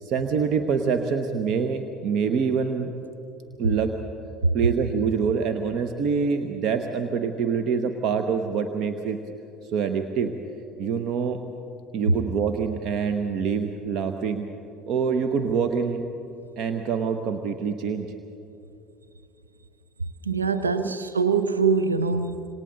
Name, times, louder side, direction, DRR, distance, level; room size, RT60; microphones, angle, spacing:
voice 1, 0.0-2.9 3.6-4.0 4.5-9.2 9.6-10.3 10.8-11.4 11.9-14.5 14.9-16.0 16.6-18.1 20.7-20.9, right 6 dB, 50° right, 7 dB, 1.0 m, -25 dB
voice 2, 20.2-22.5, right 5 dB, 85° right, 10 dB, 0.7 m, -23 dB
27.0 x 26.0 x 3.9 m, 2.8 s
figure-of-eight pair, 65°, 0 cm